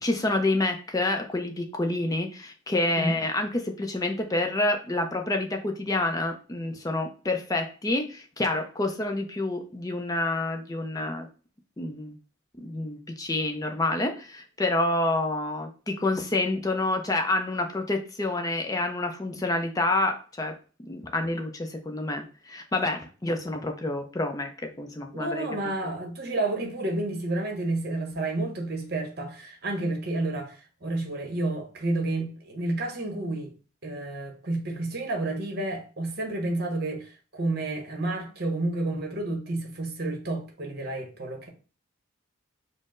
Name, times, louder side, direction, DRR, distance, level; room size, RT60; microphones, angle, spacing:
voice 1, 0.0-11.3 11.8-12.1 12.6-20.5 20.9-25.5, left 2 dB, 15° left, 0.4 m, -28 dB
voice 2, 25.1-33.5 33.8-41.5, right 2 dB, 50° right, 0.8 m, -30 dB
4.2 x 2.0 x 3.6 m
head